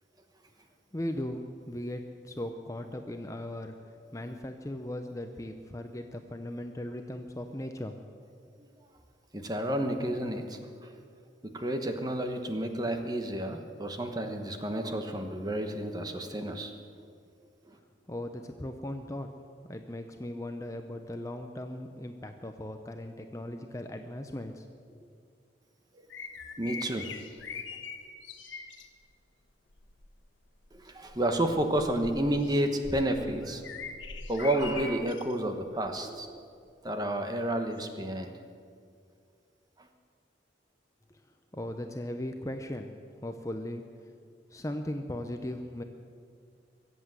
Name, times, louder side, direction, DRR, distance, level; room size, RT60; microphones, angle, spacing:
voice 1, 0.9-7.9 18.1-19.3 19.7-25.1 41.1-41.2 41.5-43.0 43.2-44.1 44.5-45.8, left 1 dB, 15° left, 6 dB, 0.6 m, -38 dB
voice 2, 9.3-11.0 11.4-17.0 17.7-17.8 26.6-27.1 30.7-33.8 34.3-36.4 36.8-38.3 39.8-39.9, right 1 dB, 20° right, 6 dB, 1.1 m, -31 dB
sound 1, 26.1-28.9 29.7-30.1 30.7-35.3 35.8-36.0 37.8-37.9, left 5 dB, 90° left, 1.3 m, -42 dB
23.0 x 8.2 x 7.6 m, 2.3 s
head